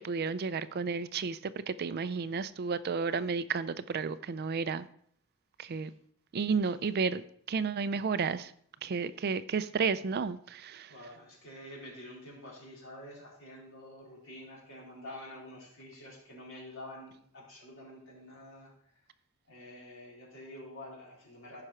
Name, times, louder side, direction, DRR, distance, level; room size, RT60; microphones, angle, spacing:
voice 1, 0.0-4.9 5.6-5.9 6.3-7.2 7.5-8.5 8.8-10.9, right 5 dB, 45° right, 14 dB, 0.4 m, -32 dB
voice 2, 10.9-18.7 19.5-21.6, left 1 dB, 60° left, -4 dB, 4.4 m, -48 dB
15.0 x 5.9 x 4.4 m, 0.63 s
head